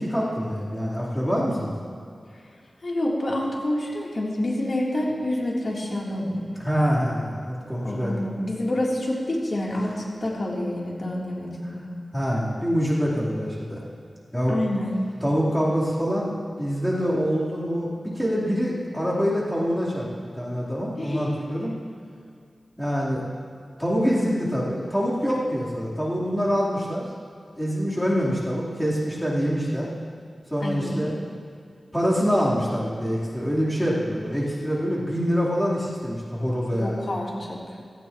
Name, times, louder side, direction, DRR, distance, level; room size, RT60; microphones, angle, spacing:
voice 1, 0.0-1.7 6.6-8.3 12.1-13.8 14.3-14.6 15.2-21.7 22.8-23.2 23.8-27.0 27.6-29.9 30.5-31.2 31.9-37.1, equal, 5° left, -7 dB, 3.9 m, -25 dB
voice 2, 2.8-6.4 7.8-11.8 14.5-14.9 21.0-21.4 30.6-31.2 36.7-37.6, left 1 dB, 55° left, -4 dB, 3.5 m, -28 dB
17.5 x 15.5 x 3.1 m, 2.4 s
wide cardioid pair, 60°, 0 cm